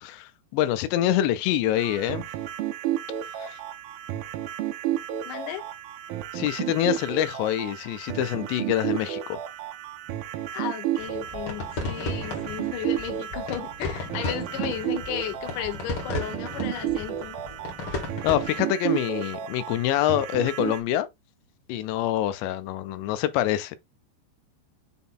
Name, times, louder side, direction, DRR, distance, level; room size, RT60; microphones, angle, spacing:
voice 1, 0.0-2.3 3.3-3.6 6.3-9.4 17.9-21.1 21.7-23.8, left 12 dB, 85° left, 2.9 m, -26 dB
sound 1, 1.7-20.8, right 12 dB, 80° right, 2.3 m, -32 dB
voice 2, 5.3-5.6 10.5-17.4, left 10 dB, 65° left, 2.2 m, -34 dB
sound 2, 11.0-18.5, left 2 dB, 45° left, 1.9 m, -35 dB
6.8 x 3.7 x 3.9 m
omnidirectional pair, 5.0 m